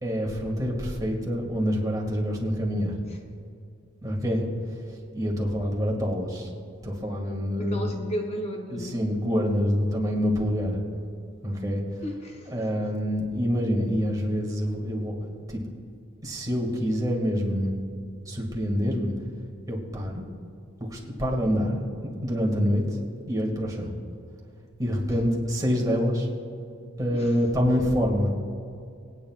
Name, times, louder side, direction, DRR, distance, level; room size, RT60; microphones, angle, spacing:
voice 1, 0.0-2.9 4.0-6.5 6.8-7.9 8.7-10.8 11.4-12.0 12.5-15.6 16.2-17.7 18.2-19.2 19.7-20.2 20.8-21.8 22.2-23.0 23.3-23.9 24.8-26.3 27.0-28.3, equal, 20° right, -1 dB, 2.0 m, -26 dB
voice 2, 7.6-9.0 12.0-12.5 27.1-27.4, equal, 30° left, 2 dB, 0.7 m, -33 dB
25.5 x 9.3 x 2.4 m, 2.5 s
head